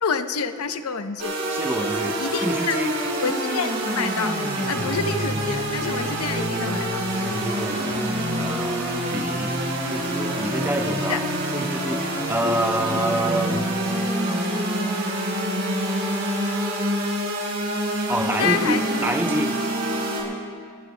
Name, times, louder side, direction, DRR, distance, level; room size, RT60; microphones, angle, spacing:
voice 1, 0.0-1.3 2.2-2.8 3.2-4.4 4.7-7.0 11.1-11.2 18.3-19.1, left 6 dB, 80° left, 9 dB, 0.7 m, -27 dB
sound 1, 1.2-20.2, right 1 dB, 50° right, 4.1 m, -26 dB
voice 2, 1.5-3.0 7.3-11.2 11.5-13.6 18.1-19.6, right 1 dB, 10° right, 4 dB, 0.7 m, -28 dB
27.0 x 18.5 x 2.2 m, 2.2 s
head